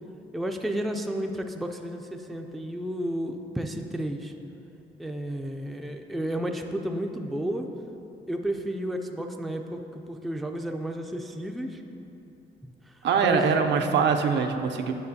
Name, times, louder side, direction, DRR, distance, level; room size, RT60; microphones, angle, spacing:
voice 1, 0.3-4.3 5.0-7.7 8.3-11.8 13.2-13.6, equal, ahead, 4 dB, 0.3 m, -32 dB
voice 2, 13.0-14.9, right 6 dB, 65° right, 5 dB, 0.5 m, -23 dB
9.1 x 5.0 x 2.7 m, 2.9 s
cardioid pair, 90°, 20 cm